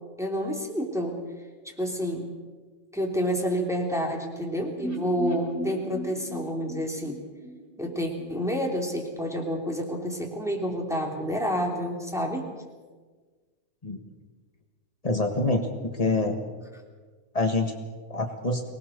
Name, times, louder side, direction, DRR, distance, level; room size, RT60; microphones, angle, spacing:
voice 1, 0.2-1.2 1.8-2.3 2.9-7.2 7.8-12.5, equal, ahead, 0 dB, 2.8 m, -29 dB
sound 1, 4.8-8.7 8.9-9.0 9.3-9.4, right 2 dB, 20° right, 5.5 m, -37 dB
voice 2, 15.0-16.4 17.3-17.7 18.1-18.6, left 2 dB, 60° left, 3 dB, 0.4 m, -26 dB
24.5 x 20.0 x 6.6 m, 1.4 s
omnidirectional pair, 3.5 m